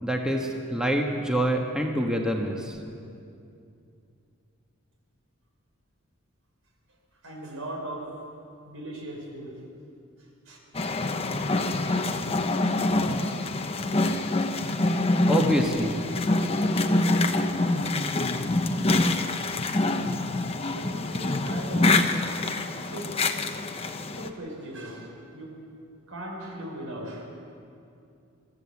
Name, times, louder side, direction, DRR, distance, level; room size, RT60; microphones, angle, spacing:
voice 1, 0.0-2.8 15.3-16.0, equal, 5° right, 1 dB, 1.3 m, -26 dB
voice 2, 7.2-8.2 8.6-9.6 10.4-10.6 20.7-22.0 22.4-22.6 22.9-23.3 23.8-25.6 26.1-27.3, right 1 dB, 75° right, 0 dB, 4.9 m, -39 dB
sound 1, 10.7-24.3, left 2 dB, 30° left, 1.0 m, -25 dB
23.5 x 14.0 x 8.4 m, 2.6 s
head